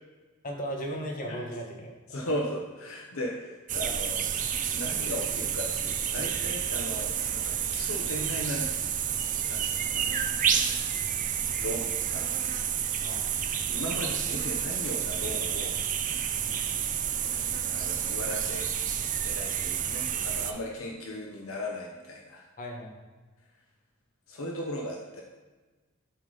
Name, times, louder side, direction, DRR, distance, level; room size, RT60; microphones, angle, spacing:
voice 1, 0.4-2.3 13.0-13.3 16.4-16.9 22.6-22.9, equal, 40° left, -1 dB, 1.6 m, -37 dB
voice 2, 2.1-8.7 9.4-10.1 11.6-12.3 13.7-15.8 17.6-18.7 19.2-22.4 24.3-25.2, left 1 dB, 70° left, -1 dB, 1.1 m, -37 dB
sound 1, 3.7-20.5, right 8 dB, 40° right, 0.6 m, -30 dB
11.5 x 4.0 x 5.1 m, 1.3 s
head